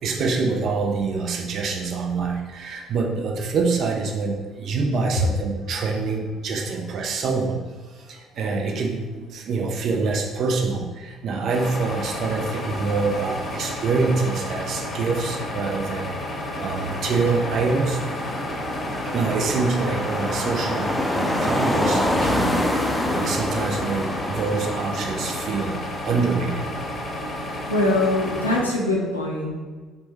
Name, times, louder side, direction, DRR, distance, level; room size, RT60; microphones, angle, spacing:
voice 1, 0.0-7.6 7.9-18.0 19.0-26.7, right 4 dB, 50° right, 2 dB, 0.5 m, -26 dB
sound 1, 11.5-28.6, left 1 dB, 35° left, 0.8 m, -32 dB
sound 2, 15.4-25.8, left 1 dB, 10° left, 0.4 m, -27 dB
voice 2, 27.7-29.5, left 2 dB, 85° left, -3 dB, 0.5 m, -22 dB
4.2 x 2.2 x 3.1 m, 1.4 s
figure-of-eight pair, 50°, 0 cm